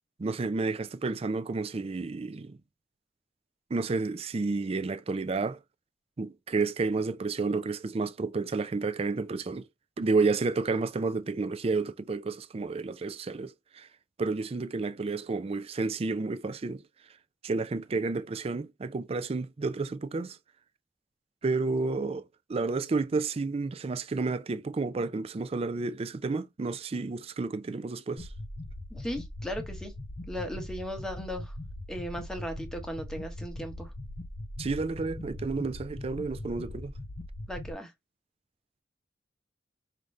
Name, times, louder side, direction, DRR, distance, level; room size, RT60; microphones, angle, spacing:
voice 1, 0.2-2.6 3.7-5.6 6.2-9.7 10.0-13.9 14.2-16.8 17.4-20.4 21.4-28.3 34.6-36.9, right 3 dB, 35° right, 0.4 m, -31 dB
sound 1, 28.2-37.7, left 1 dB, 50° left, 0.7 m, -41 dB
voice 2, 28.9-29.9 30.3-31.5 31.9-33.9 37.5-37.9, equal, 5° left, 1.0 m, -37 dB
5.1 x 2.7 x 3.1 m
head